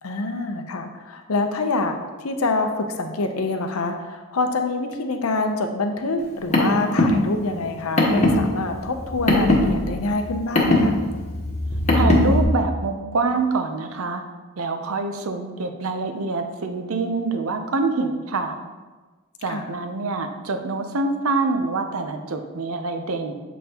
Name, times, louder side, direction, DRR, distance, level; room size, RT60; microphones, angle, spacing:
voice 1, 0.0-11.0 19.5-19.7, left 3 dB, 75° left, 5 dB, 0.7 m, -26 dB
Car, 6.2-12.4, left 1 dB, 30° left, 1.1 m, -20 dB
voice 2, 11.9-14.2 14.6-18.5 19.4-23.3, right 3 dB, 75° right, 6 dB, 0.6 m, -25 dB
7.4 x 5.4 x 2.9 m, 1.3 s
head